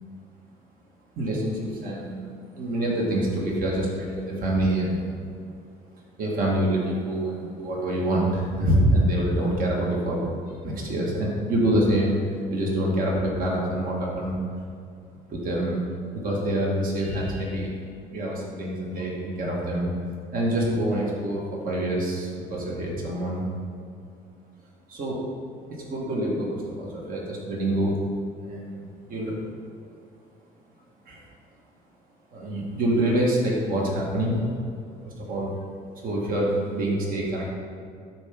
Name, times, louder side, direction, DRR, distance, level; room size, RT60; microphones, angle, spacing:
voice 1, 1.2-2.3 2.6-5.1 6.2-10.2 10.6-12.2 12.5-14.4 15.3-17.7 18.1-19.9 20.3-23.5 24.9-25.2 25.7-28.0 28.4-29.4 31.1-31.2 32.3-34.4 35.0-35.5 36.0-37.5, right 1 dB, 55° right, -3 dB, 1.9 m, -26 dB
12.5 x 4.6 x 3.8 m, 2.3 s
cardioid pair, 110°, 17 cm